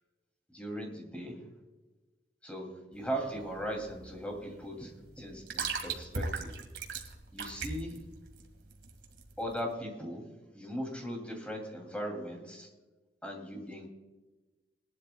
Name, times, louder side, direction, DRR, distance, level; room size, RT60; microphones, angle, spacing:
voice 1, 0.5-1.5 2.4-6.5 7.3-8.3 9.4-12.7 13.2-13.9, equal, 5° left, 2 dB, 2.6 m, -39 dB
sound 1, 2.9-9.7, right 4 dB, 70° right, 1.9 m, -39 dB
20.0 x 12.0 x 2.3 m, 1.2 s
head